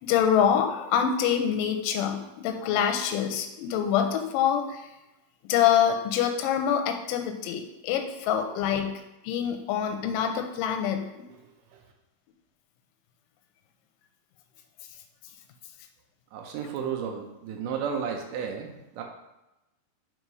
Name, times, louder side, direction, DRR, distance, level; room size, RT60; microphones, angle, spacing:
voice 1, 0.0-4.8 5.5-11.3, left 8 dB, 80° left, 5 dB, 2.1 m, -25 dB
voice 2, 16.3-19.0, right 7 dB, 80° right, 2 dB, 2.0 m, -33 dB
5.5 x 3.9 x 4.6 m, 0.96 s
omnidirectional pair, 4.2 m